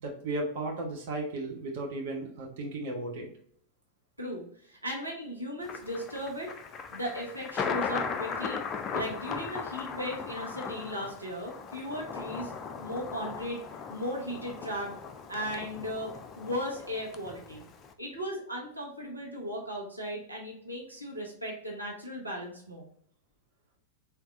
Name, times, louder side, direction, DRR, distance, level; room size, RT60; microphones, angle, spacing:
voice 1, 0.0-3.3, right 2 dB, 55° right, 0 dB, 1.0 m, -35 dB
voice 2, 4.2-6.5 6.9-8.6 8.9-12.5 12.8-13.6 13.9-14.9 15.3-16.1 16.4-17.6 18.0-22.9, equal, 85° right, -2 dB, 1.1 m, -36 dB
Thunder, 5.6-17.9, left 5 dB, 30° left, 0.5 m, -38 dB
4.6 x 3.4 x 2.5 m, 0.63 s
figure-of-eight pair, 90°, 0 cm